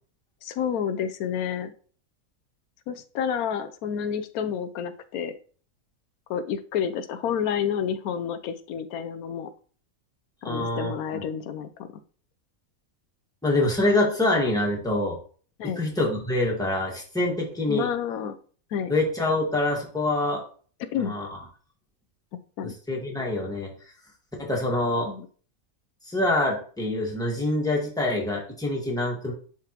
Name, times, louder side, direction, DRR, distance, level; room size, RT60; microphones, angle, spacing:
voice 1, 0.4-1.7 2.9-5.3 6.3-9.5 10.4-11.9 15.6-15.8 17.7-18.4 18.7-18.9 20.9-21.1 22.6-22.7 25.1-25.3, left 8 dB, 85° left, 10 dB, 1.1 m, -29 dB
voice 2, 10.4-11.2 13.4-15.2 15.8-17.9 18.9-20.4 20.9-21.3 22.6-23.7 24.4-25.1 26.0-29.3, left 2 dB, 5° left, -2 dB, 1.4 m, -25 dB
10.5 x 3.7 x 2.9 m, 0.44 s
omnidirectional pair, 1.5 m